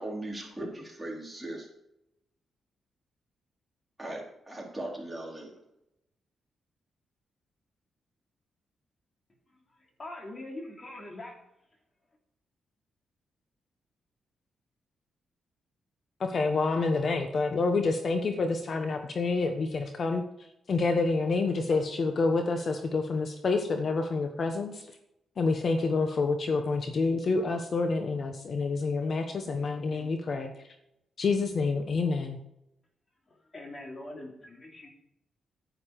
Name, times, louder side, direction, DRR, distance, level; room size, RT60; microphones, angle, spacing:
voice 1, 0.0-1.7 4.0-5.5, right 1 dB, 10° right, -2 dB, 4.1 m, -38 dB
voice 2, 9.5-11.4 33.3-34.9, left 1 dB, 35° left, 1 dB, 3.1 m, -43 dB
voice 3, 16.3-20.2 20.7-24.8 25.4-30.5 31.2-32.4, left 3 dB, 50° left, 6 dB, 1.1 m, -28 dB
10.0 x 9.6 x 4.8 m, 0.84 s
cardioid pair, 95°, 0 cm